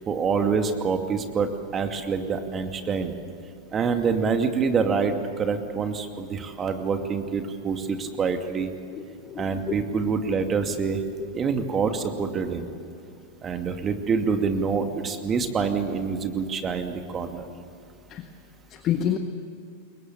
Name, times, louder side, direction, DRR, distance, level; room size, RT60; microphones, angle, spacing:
voice 1, 0.0-3.1 3.7-8.7 9.4-11.0 11.3-12.7 13.4-17.5, right 5 dB, 25° right, 6 dB, 2.4 m, -26 dB
voice 2, 8.9-9.8 11.2-11.3 18.1-18.3 18.7-19.2, left 10 dB, 35° left, 7 dB, 1.5 m, -29 dB
28.5 x 22.5 x 7.2 m, 2.6 s
figure-of-eight pair, 90°, 0 cm